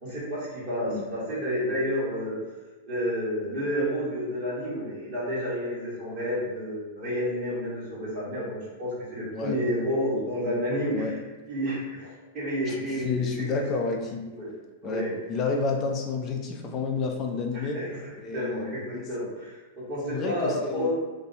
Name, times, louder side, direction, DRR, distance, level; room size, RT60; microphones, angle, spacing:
voice 1, 0.0-2.4 2.9-11.1 11.5-13.7 14.3-14.5 14.8-15.2 17.5-18.0 18.3-20.9, equal, 25° right, -10 dB, 1.5 m, -30 dB
voice 2, 12.7-14.2 14.8-17.8 18.2-19.0 20.0-20.9, left 4 dB, 25° left, 2 dB, 0.3 m, -30 dB
2.7 x 2.2 x 3.9 m, 1.3 s
supercardioid pair, 170°, 0 cm